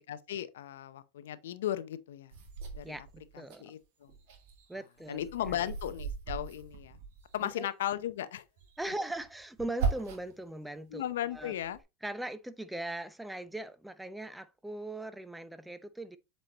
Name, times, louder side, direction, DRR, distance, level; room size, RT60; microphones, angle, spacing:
voice 1, 0.1-2.3 2.8-3.0 3.6-4.1 5.1-7.0 7.3-8.4 10.9-11.8, left 11 dB, 80° left, 0.6 m, -36 dB
sound 1, 2.3-3.6 4.0-7.5 8.6-10.4 10.9-11.8, right 5 dB, 70° right, 1.8 m, -39 dB
voice 2, 2.8-3.7 4.7-5.7 7.4-7.7 8.8-11.5 12.0-16.2, right 1 dB, 5° right, 0.7 m, -40 dB
7.8 x 4.4 x 2.9 m
hypercardioid pair, 100°, 0 cm